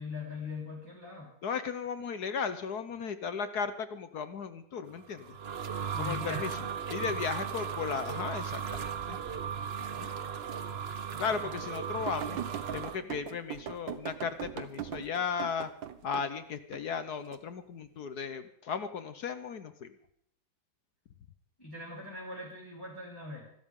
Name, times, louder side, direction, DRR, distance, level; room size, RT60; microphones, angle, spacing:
voice 1, 0.0-1.3 5.9-6.5 10.8-11.5 21.6-23.5, left 3 dB, 10° left, -6 dB, 4.3 m, -41 dB
voice 2, 1.4-5.4 6.0-6.5 6.9-9.2 9.9-10.1 11.2-12.4 12.7-15.7 16.0-19.9, left 6 dB, 55° left, 11 dB, 1.3 m, -36 dB
sound 1, 5.0-13.0, right 7 dB, 50° right, 0.7 m, -37 dB
sound 2, 10.5-10.6 11.2-11.3 12.1-16.3 16.7-17.4 18.0-18.3, right 9 dB, 70° right, 1.7 m, -40 dB
25.5 x 13.0 x 3.8 m, 0.66 s
omnidirectional pair, 2.2 m